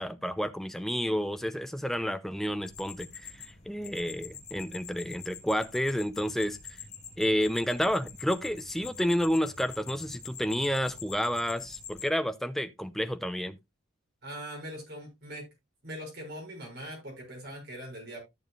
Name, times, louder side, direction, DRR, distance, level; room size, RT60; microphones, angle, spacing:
voice 1, 0.0-6.8 7.2-13.6, equal, ahead, 0.6 m, -30 dB
sound 1, 2.7-12.1, left 7 dB, 35° left, 2.6 m, -45 dB
voice 2, 14.2-15.5 15.8-18.2, equal, 55° right, 6.3 m, -41 dB
13.5 x 7.1 x 2.4 m
head